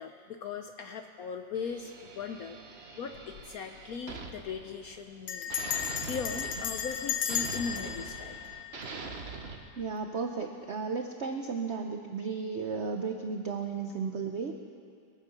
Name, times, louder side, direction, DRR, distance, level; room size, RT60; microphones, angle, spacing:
voice 1, 0.0-8.4, left 6 dB, 70° left, 6 dB, 0.8 m, -39 dB
sound 1, 1.5-5.2 5.5-9.6, right 4 dB, 45° right, 1.0 m, -43 dB
Bell, 3.1-3.5 3.8-3.9 4.1-4.5 5.3-9.4, left 9 dB, 85° left, 1.6 m, -35 dB
voice 2, 9.8-14.5, right 5 dB, 70° right, 4 dB, 0.6 m, -34 dB
21.5 x 8.6 x 6.9 m, 2.4 s
omnidirectional pair, 2.1 m